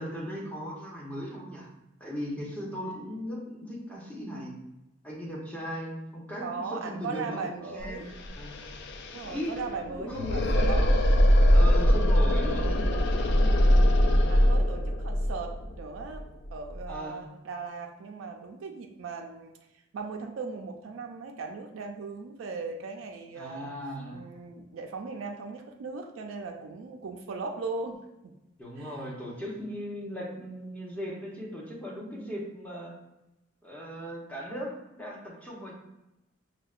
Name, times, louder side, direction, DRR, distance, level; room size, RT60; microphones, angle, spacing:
voice 1, 0.0-1.7 2.0-4.6 5.0-8.6 9.2-10.7 11.5-12.8 16.9-17.3 23.4-24.2 28.6-32.9 33.6-35.7, equal, 10° left, -4 dB, 0.7 m, -38 dB
voice 2, 6.4-8.2 9.1-10.9 13.4-14.0 14.3-19.5 19.9-23.7 24.1-28.3 28.8-29.0, right 4 dB, 80° right, 3 dB, 0.3 m, -38 dB
sound 1, 7.8-7.9 8.1-16.9, equal, 60° left, 0.3 m, -23 dB
5.4 x 2.1 x 2.4 m, 0.93 s
head